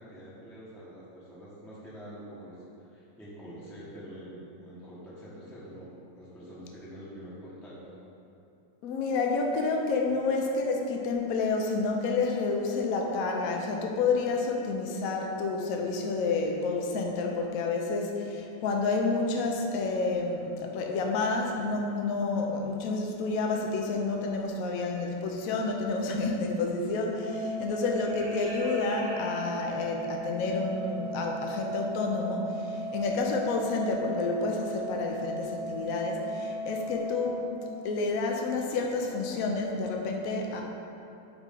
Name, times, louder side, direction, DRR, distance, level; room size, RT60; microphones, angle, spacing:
voice 1, 0.0-8.0, equal, ahead, -9 dB, 0.8 m, -46 dB
voice 2, 8.8-37.5 37.8-40.6, left 3 dB, 65° left, 1 dB, 0.9 m, -29 dB
sound 1, 24.8-25.0 26.2-26.3 27.1-27.4 27.7-30.4 32.2-32.3 32.8-32.9 33.9-34.2 34.4-34.7 35.0-35.1, equal, 55° right, 2.0 m, -46 dB
Organ, 27.1-38.2, right 1 dB, 80° left, 1.6 m, -36 dB
9.0 x 3.1 x 3.8 m, 2.7 s
omnidirectional pair, 1.9 m